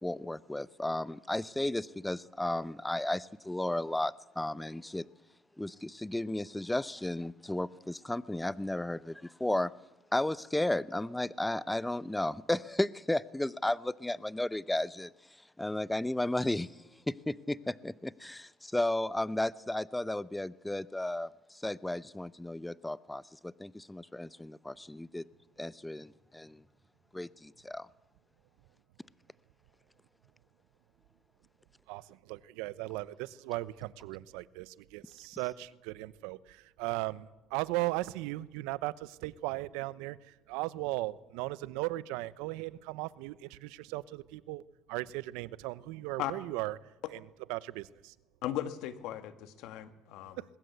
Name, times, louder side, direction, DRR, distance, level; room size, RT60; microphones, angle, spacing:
voice 1, 0.0-5.1 5.6-9.7 10.1-15.1 15.6-16.8 17.1-25.2 25.6-26.6 27.1-27.9, left 1 dB, 10° left, 18 dB, 0.7 m, -34 dB
voice 2, 31.9-44.6 44.9-46.9 47.5-48.1 50.4-50.5, right 19 dB, 85° right, 18 dB, 0.8 m, -37 dB
voice 3, 48.4-50.4, left 12 dB, 75° left, 11 dB, 1.8 m, -37 dB
21.0 x 20.5 x 8.2 m, 1.1 s
supercardioid pair, 90°, 0 cm